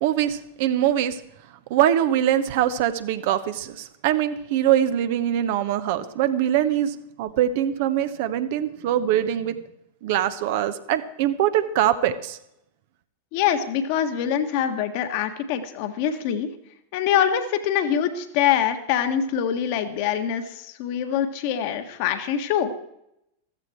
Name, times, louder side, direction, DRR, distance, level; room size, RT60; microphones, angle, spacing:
voice 1, 0.0-1.2 1.7-9.5 10.0-12.4, right 11 dB, 50° right, 11 dB, 1.1 m, -23 dB
voice 2, 13.3-16.5 16.9-22.7, left 9 dB, 45° left, 8 dB, 1.6 m, -24 dB
15.0 x 14.0 x 4.6 m, 0.80 s
figure-of-eight pair, 90°, 0 cm